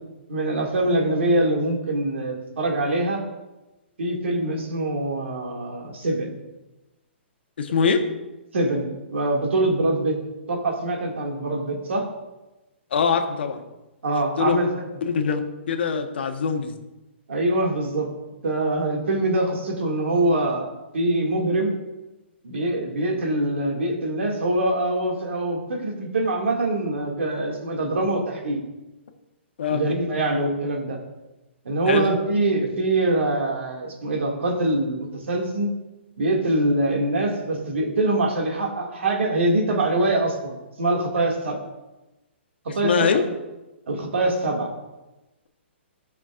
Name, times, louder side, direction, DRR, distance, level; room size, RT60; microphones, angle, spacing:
voice 1, 0.3-3.2 4.0-6.3 8.5-10.2 10.5-12.1 14.0-14.7 17.3-18.1 18.4-21.7 22.4-28.6 29.7-31.0 31.6-35.7 36.2-41.6 42.7-43.2 43.9-44.7, right 2 dB, 80° right, 1 dB, 2.1 m, -24 dB
voice 2, 7.6-8.0 12.9-13.6 14.4-14.6 15.1-15.4 15.7-16.7 29.6-29.8 31.9-32.1 42.8-43.2, left 6 dB, 60° left, 5 dB, 1.1 m, -22 dB
16.0 x 5.9 x 2.5 m, 1.0 s
hypercardioid pair, 175°, 7 cm